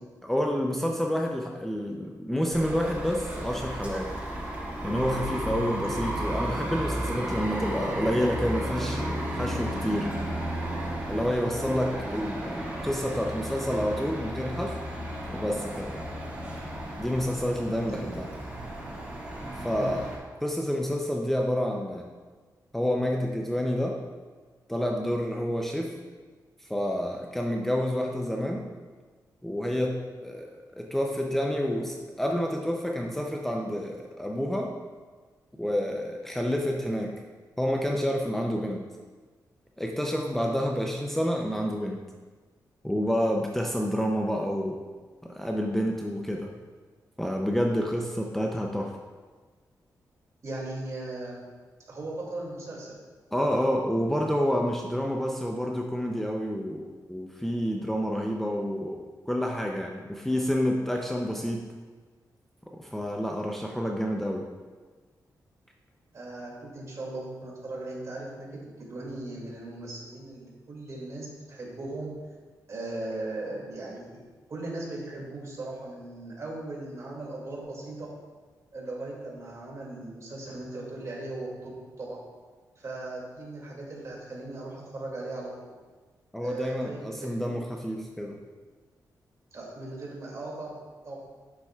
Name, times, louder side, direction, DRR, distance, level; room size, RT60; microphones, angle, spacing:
voice 1, 0.2-4.1 4.8-9.0 9.3-10.1 11.1-14.8 15.3-16.0 17.0-18.3 19.6-20.1 20.4-22.1 22.7-24.0 24.7-26.0 26.6-28.7 29.4-34.7 35.6-37.2 37.6-38.9 39.8-42.0 42.8-44.8 45.2-46.5 47.2-48.9 53.3-61.7 62.7-64.5 86.3-88.4, equal, 5° left, 0 dB, 0.6 m, -29 dB
sound 1, 2.5-20.2, right 1 dB, 20° right, 2.0 m, -33 dB
voice 2, 50.4-51.4 51.9-52.9 66.1-72.1 72.7-74.2 74.5-78.1 78.7-81.7 82.0-82.2 82.8-85.5 86.4-87.5 89.5-90.8 91.0-91.2, right 2 dB, 50° right, -3 dB, 2.4 m, -38 dB
9.5 x 7.2 x 2.4 m, 1.4 s
wide cardioid pair, 115°, 7 cm